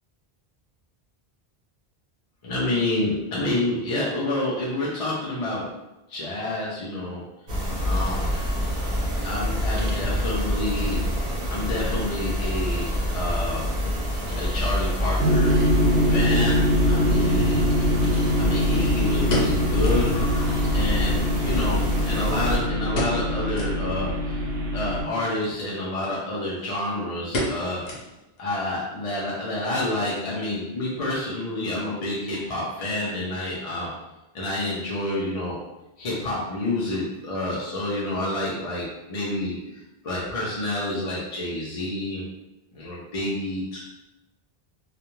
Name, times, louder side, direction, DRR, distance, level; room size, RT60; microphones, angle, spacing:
voice 1, 2.4-5.7 6.1-7.2 7.8-8.4 9.2-11.0 11.5-13.7 14.3-17.7 18.4-24.4 24.7-27.8 28.4-33.9 34.3-35.6 36.0-42.3 42.7-43.8, left 1 dB, 50° left, -6 dB, 0.5 m, -28 dB
sound 1, 7.5-22.6, equal, 50° right, 0.7 m, -26 dB
sound 2, 15.2-25.0, equal, 80° right, 0.8 m, -23 dB
sound 3, 18.8-20.1 20.5-20.6 20.8-20.9 21.6-22.4 22.9-23.3 23.5-23.8 24.3-24.4 25.4-25.6 26.0-26.1 26.4-26.8 27.3-28.4 28.7-28.8 29.4-29.7 30.0-30.1, left 1 dB, 75° left, 0.9 m, -31 dB
2.4 x 2.2 x 2.9 m, 0.99 s
omnidirectional pair, 1.0 m